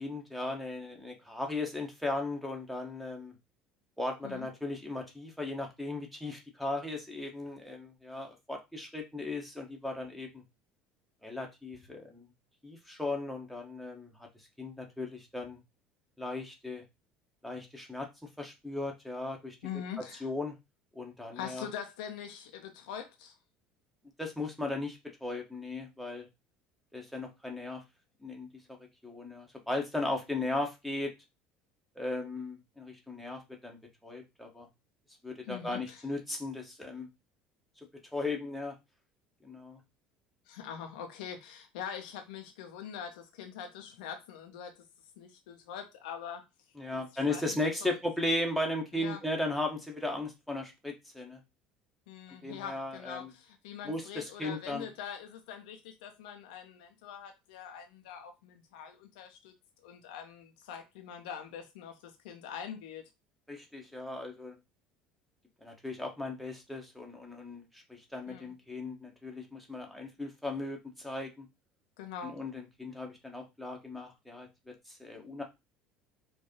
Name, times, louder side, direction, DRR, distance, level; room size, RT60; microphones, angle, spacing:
voice 1, 0.0-3.3 4.0-10.4 11.2-12.3 12.6-14.3 14.6-15.6 16.2-16.8 17.4-18.1 18.4-19.6 20.2-20.6 20.9-21.7 24.2-26.3 26.9-27.8 28.2-28.5 29.0-31.1 31.9-34.7 35.2-37.1 38.1-38.7 39.4-39.8 46.8-51.4 52.4-53.3 53.8-54.9 63.5-64.5 65.6-71.5 72.2-75.4, left 2 dB, ahead, 1.2 m, -37 dB
voice 2, 19.6-20.3 21.3-23.3 35.5-36.0 40.5-44.7 45.2-46.4 46.9-47.0 47.3-48.0 48.9-49.2 52.1-59.5 59.8-63.0 68.3-68.5 72.0-72.3, left 8 dB, 65° left, 0.7 m, -43 dB
4.7 x 2.6 x 2.9 m
figure-of-eight pair, 65°, 5 cm